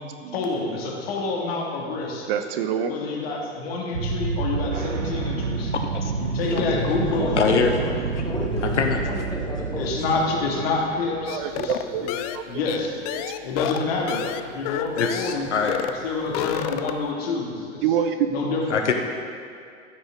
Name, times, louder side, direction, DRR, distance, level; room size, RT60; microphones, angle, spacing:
voice 1, 0.3-2.3 2.9-5.7 6.2-7.3 9.8-11.7 12.0-12.1 12.5-13.1 13.4-15.5 16.0-17.8 18.3-18.8, left 3 dB, 55° left, -1 dB, 1.9 m, -28 dB
voice 2, 2.3-3.0 11.3-12.1 12.3-12.4 14.1-14.2 17.8-18.3, right 8 dB, 50° right, 7 dB, 0.7 m, -26 dB
sound 1, 3.9-11.7, right 4 dB, 85° right, 0.8 m, -29 dB
voice 3, 6.4-6.8 7.1-7.9 8.2-9.8 10.1-10.2 15.8-16.0, left 2 dB, 10° left, -2 dB, 1.5 m, -33 dB
voice 4, 7.3-7.7 8.8-9.0 14.9-15.8 18.7-18.9, left 6 dB, 75° left, 4 dB, 0.9 m, -22 dB
sound 2, 11.3-15.4 15.7-16.0 16.2-17.1, left 11 dB, 35° left, 0.4 m, -30 dB
14.0 x 6.3 x 3.6 m, 2.3 s
figure-of-eight pair, 90°, 36 cm